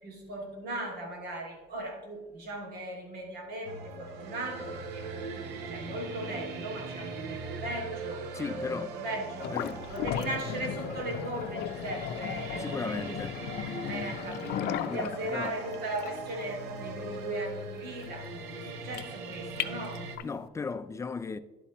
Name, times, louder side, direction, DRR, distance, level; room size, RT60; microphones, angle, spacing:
voice 1, 0.0-9.6 9.9-13.2 13.9-20.1, right 1 dB, 70° right, 2.5 m, -38 dB
sound 1, 3.6-20.2, right 3 dB, 90° right, 1.0 m, -40 dB
voice 2, 8.3-8.9 9.5-9.8 12.6-13.4 14.9-15.5 20.2-21.4, left 4 dB, 15° left, 0.4 m, -36 dB
sound 2, 9.4-20.4, left 10 dB, 75° left, 0.5 m, -37 dB
11.0 x 8.4 x 3.0 m
cardioid pair, 110°, 17 cm